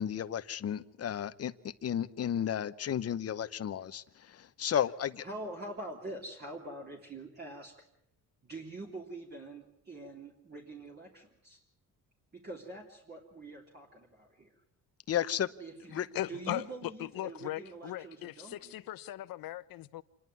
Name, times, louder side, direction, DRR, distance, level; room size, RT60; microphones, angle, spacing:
voice 1, 0.0-1.5 1.8-4.0 4.6-5.2 15.1-15.5 15.9-16.1, left 9 dB, 40° left, 0.9 m, -32 dB
voice 2, 5.2-7.8 8.4-11.6 12.3-14.5 15.6-18.7, right 2 dB, 25° right, 3.1 m, -45 dB
voice 3, 15.9-20.0, left 14 dB, 70° left, 0.9 m, -39 dB
27.5 x 11.0 x 9.6 m
cardioid pair, 130°, 36 cm